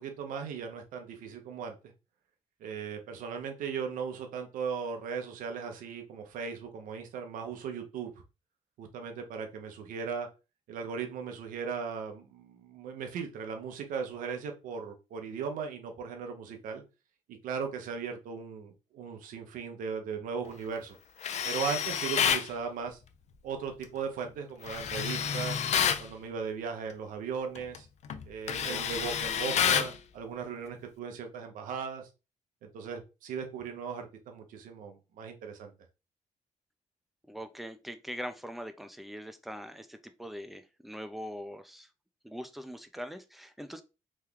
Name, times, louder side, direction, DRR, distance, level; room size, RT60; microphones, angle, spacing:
voice 1, 0.0-1.7 2.6-8.1 8.8-10.3 10.7-16.8 17.3-21.0 21.4-23.0 23.4-25.6 26.0-27.9 28.3-32.1 32.7-35.7, right 6 dB, 80° right, 0.7 m, -37 dB
Tools, 21.2-22.5 24.7-26.0 27.5-27.8 28.1-30.0, left 8 dB, 55° left, 0.4 m, -29 dB
voice 2, 37.3-41.9 42.2-43.8, equal, ahead, 0.5 m, -42 dB
3.0 x 2.3 x 3.6 m
cardioid pair, 85°, 14 cm